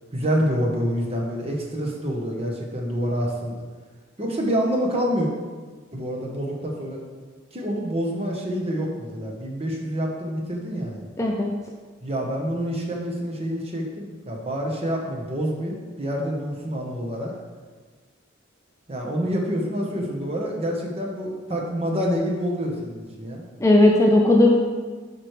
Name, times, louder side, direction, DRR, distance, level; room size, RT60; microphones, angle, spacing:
voice 1, 0.1-3.6 4.2-5.3 5.9-7.0 7.5-11.0 12.0-17.3 18.9-23.4, equal, 30° right, -1 dB, 1.1 m, -27 dB
voice 2, 11.2-11.5 23.6-24.5, left 1 dB, 15° left, 0 dB, 0.4 m, -16 dB
11.0 x 4.5 x 3.3 m, 1.4 s
head